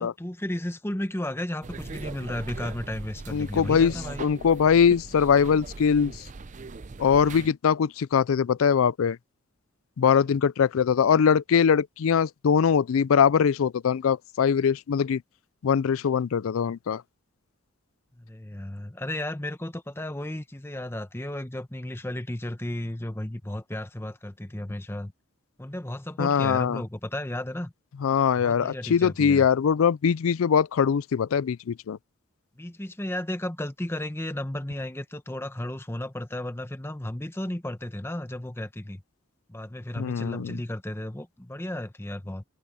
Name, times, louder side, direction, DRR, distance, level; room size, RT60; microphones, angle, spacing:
voice 1, 0.0-4.3 18.2-25.1 25.6-27.7 28.4-29.5 32.6-39.0 39.5-42.4, left 1 dB, 10° left, 0.9 m, -34 dB
sound 1, 1.6-7.5, right 3 dB, 35° right, 0.5 m, -40 dB
voice 2, 3.3-3.9 4.2-6.1 7.0-9.2 10.0-15.2 15.6-17.0 26.2-26.8 28.0-32.0 40.0-40.6, left 7 dB, 85° left, 0.4 m, -22 dB
head